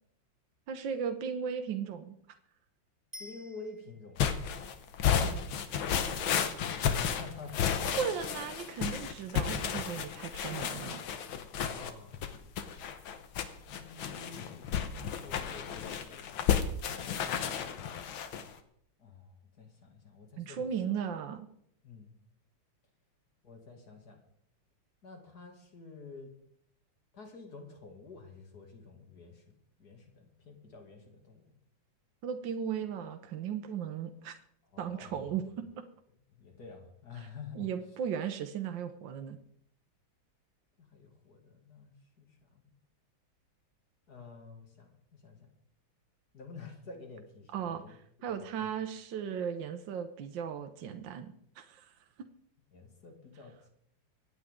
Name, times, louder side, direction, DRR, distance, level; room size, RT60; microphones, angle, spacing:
voice 1, 0.7-2.2 5.3-5.5 8.0-11.0 20.4-21.5 32.2-34.3 34.8-35.6 37.5-39.4 47.5-51.9, right 7 dB, 70° right, 6 dB, 1.5 m, -36 dB
Bicycle bell, 3.1-4.2 13.3-13.4, equal, 20° right, 0.6 m, -50 dB
voice 2, 3.2-4.3 5.9-7.6 11.6-12.2 13.8-17.1 19.0-20.7 21.8-22.1 23.4-24.2 25.0-26.4 27.1-31.5 34.7-35.5 36.3-37.7 40.8-42.7 44.1-45.5 46.3-48.7 52.7-53.7, left 4 dB, 50° left, 3 dB, 2.8 m, -50 dB
sound 1, 4.2-18.5, left 8 dB, 90° left, 1.8 m, -32 dB
24.5 x 9.2 x 3.7 m, 0.71 s
omnidirectional pair, 2.1 m